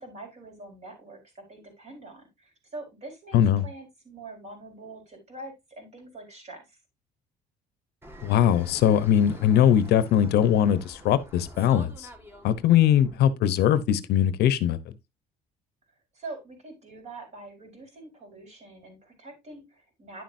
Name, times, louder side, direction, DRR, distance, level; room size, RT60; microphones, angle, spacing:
voice 1, 0.0-6.8 16.1-20.2, right 2 dB, 40° right, 4.4 m, -44 dB
voice 2, 3.3-3.6 8.2-12.1 12.4-14.8, left 10 dB, 75° left, 0.8 m, -21 dB
Fixed-wing aircraft airplane, 8.0-13.2, right 1 dB, 15° right, 2.0 m, -47 dB
9.9 x 7.5 x 2.6 m
cardioid pair, 110°, 17 cm